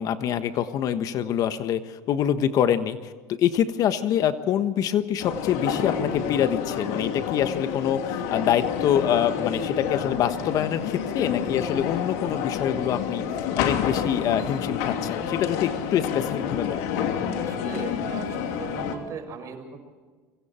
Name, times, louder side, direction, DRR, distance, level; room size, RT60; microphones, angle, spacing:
voice 1, 0.0-13.2 13.5-16.9, left 9 dB, 55° left, 11 dB, 1.3 m, -25 dB
sound 1, 5.2-19.0, left 8 dB, 80° left, 2.9 m, -29 dB
voice 2, 17.4-19.8, right 5 dB, 45° right, 6 dB, 6.0 m, -38 dB
25.5 x 23.5 x 4.5 m, 1.4 s
supercardioid pair, 105°, 8 cm